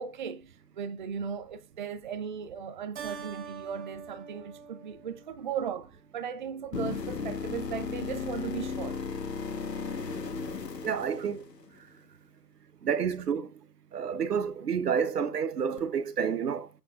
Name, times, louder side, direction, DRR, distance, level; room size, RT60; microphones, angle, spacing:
voice 1, 0.0-9.0 11.2-11.3, right 7 dB, 30° right, 0.6 m, -37 dB
Keyboard (musical), 3.0-5.8, right 6 dB, 50° right, 3.1 m, -44 dB
sound 1, 6.7-11.8 15.8-15.9, left 5 dB, 90° left, 1.5 m, -35 dB
voice 2, 10.8-11.4 12.8-13.5 13.9-16.7, right 7 dB, 75° right, 1.1 m, -29 dB
18.5 x 8.5 x 2.5 m
hypercardioid pair, 145°, 48 cm